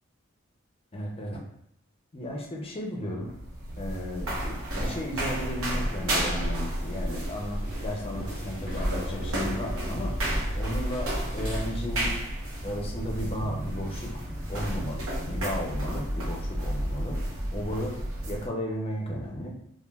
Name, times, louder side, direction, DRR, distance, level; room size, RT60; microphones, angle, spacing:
voice 1, 0.9-1.4 2.1-3.3 3.8-10.2 10.6-12.2 12.6-14.2 14.5-17.2 17.5-18.0 18.3-19.5, equal, 25° left, 0 dB, 0.5 m, -34 dB
sound 1, 3.2-18.5, right 1 dB, 90° right, 0.8 m, -31 dB
sound 2, 6.9-12.0, right 1 dB, 25° right, 0.8 m, -42 dB
3.2 x 2.2 x 2.2 m, 0.73 s
head